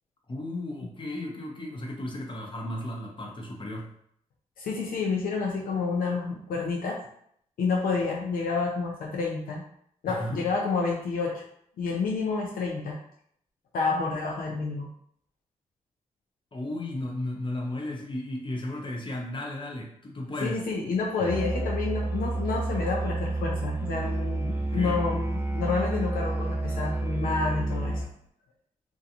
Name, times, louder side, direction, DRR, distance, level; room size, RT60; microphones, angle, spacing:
voice 1, 0.3-3.9 10.1-10.5 16.5-20.6 24.6-25.2, left 1 dB, 35° left, 0 dB, 0.8 m, -34 dB
voice 2, 4.6-7.0 7.6-9.6 10.0-11.4 11.8-13.0 13.7-14.9 20.4-28.0, left 4 dB, 75° left, -2 dB, 0.5 m, -29 dB
Musical instrument, 21.2-28.2, right 2 dB, 15° right, 0.6 m, -30 dB
2.4 x 2.2 x 2.8 m, 0.68 s
supercardioid pair, 50°, 15 cm